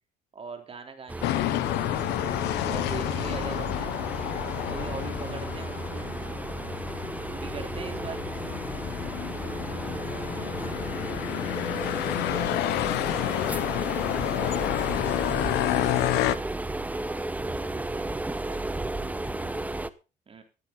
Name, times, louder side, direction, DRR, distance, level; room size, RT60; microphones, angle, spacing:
voice 1, 0.3-1.7 2.7-4.0 4.7-6.0 7.3-8.2 17.7-18.6 20.3-20.4, right 5 dB, 35° right, 3.6 m, -40 dB
sound 1, 1.1-19.9, right 2 dB, 10° right, 1.0 m, -34 dB
sound 2, 1.2-16.4, left 17 dB, 90° left, 0.9 m, -30 dB
sound 3, 2.0-19.5, left 2 dB, 15° left, 1.2 m, -47 dB
voice 2, 19.0-19.7, left 6 dB, 75° left, 6.8 m, -53 dB
15.0 x 12.5 x 4.0 m
cardioid pair, 110°, 17 cm